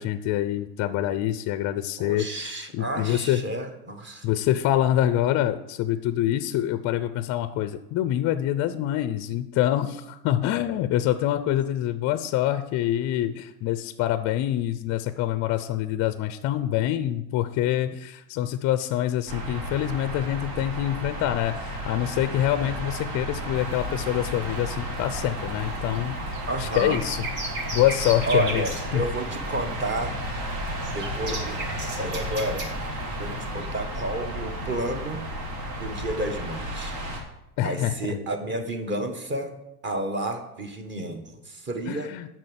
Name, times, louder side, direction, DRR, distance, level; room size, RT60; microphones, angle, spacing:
voice 1, 0.0-3.4 4.2-26.2 26.6-28.6 28.9-29.1 37.6-38.2 41.9-42.3, left 12 dB, 35° left, 11 dB, 0.6 m, -26 dB
voice 2, 2.0-4.3 8.7-8.8 26.5-27.0 28.2-30.2 30.9-32.6 33.2-35.2 35.8-37.0 37.6-39.5 39.8-42.1, right 1 dB, 25° right, 6 dB, 1.6 m, -31 dB
sound 1, 19.3-37.2, equal, 55° right, 3.3 m, -33 dB
sound 2, 23.5-33.5, right 2 dB, 75° right, 3.5 m, -38 dB
8.6 x 6.2 x 8.2 m, 0.89 s
supercardioid pair, 115°, 47 cm